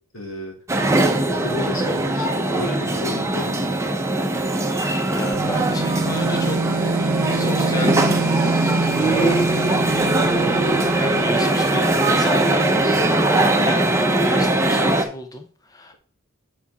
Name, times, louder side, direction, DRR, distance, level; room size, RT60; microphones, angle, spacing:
voice 1, 0.1-0.6 1.2-4.0 12.8-13.3, left 1 dB, 75° left, 1 dB, 2.3 m, -33 dB
sound 1, 0.7-15.0, right 2 dB, 15° right, 0.9 m, -20 dB
voice 2, 5.1-6.6 7.3-8.0 9.0-9.7 10.4-12.9 13.6-15.9, left 2 dB, 15° left, 6 dB, 0.6 m, -32 dB
sound 2, 5.3-12.0, right 4 dB, 80° right, 0.5 m, -26 dB
7.3 x 5.8 x 4.2 m, 0.44 s
head